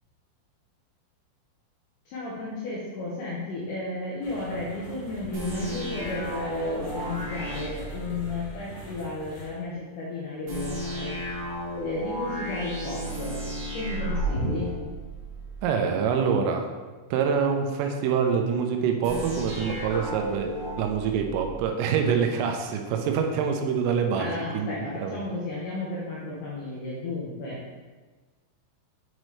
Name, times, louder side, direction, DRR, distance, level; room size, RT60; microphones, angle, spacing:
voice 1, 2.1-11.2 11.8-13.4 13.7-14.8 24.2-27.8, left 2 dB, 75° left, -5 dB, 2.4 m, -33 dB
sound 1, 4.2-9.5, equal, 40° left, 2.1 m, -44 dB
sound 2, 5.3-8.6 10.5-15.7 19.0-21.7, right 1 dB, 60° right, 1.7 m, -33 dB
voice 2, 15.6-16.7 17.1-20.5 20.8-24.7 25.0-25.2, right 6 dB, 85° right, 4 dB, 3.3 m, -25 dB
7.5 x 5.3 x 3.1 m, 1.3 s
omnidirectional pair, 5.7 m